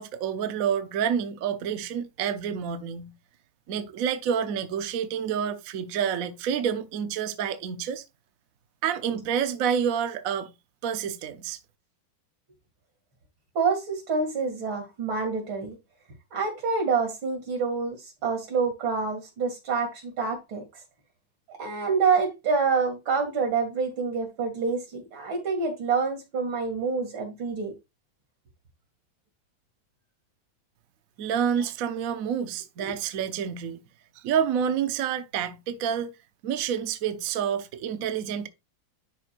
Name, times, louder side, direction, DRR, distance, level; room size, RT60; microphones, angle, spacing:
voice 1, 0.0-3.1 3.7-8.0 8.8-10.5 10.8-11.6 31.2-33.8 34.2-36.1 36.4-38.5, right 8 dB, 60° right, 0.9 m, -28 dB
voice 2, 13.5-15.8 16.3-20.6 21.6-27.7 32.8-32.9, right 5 dB, 85° right, 3.1 m, -27 dB
11.0 x 4.4 x 2.5 m
omnidirectional pair, 2.1 m